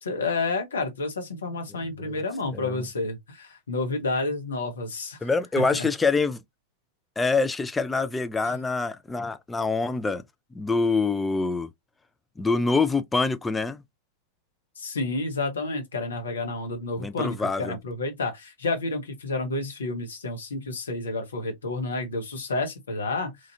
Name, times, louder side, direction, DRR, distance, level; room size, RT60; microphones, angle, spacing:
voice 1, 0.0-5.9 8.4-8.6 14.8-23.3, left 3 dB, 70° left, 1.0 m, -30 dB
voice 2, 5.2-6.4 7.2-10.2 10.5-11.7 12.4-13.8 17.0-17.8, left 4 dB, 10° left, 0.4 m, -25 dB
3.1 x 2.4 x 2.7 m
figure-of-eight pair, 90°, 0 cm